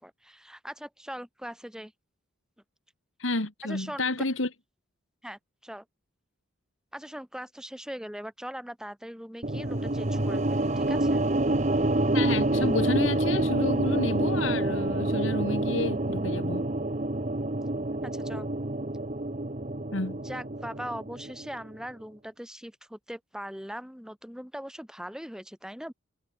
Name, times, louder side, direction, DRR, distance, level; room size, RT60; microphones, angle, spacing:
voice 1, 0.0-1.9 3.6-4.1 5.2-5.8 6.9-11.2 18.0-18.5 20.2-25.9, equal, 5° right, 4.3 m, -40 dB
voice 2, 3.2-4.5 12.1-16.7 19.9-20.2, left 2 dB, 75° left, 2.5 m, -30 dB
sound 1, 9.4-21.7, right 1 dB, 35° right, 1.8 m, -27 dB
head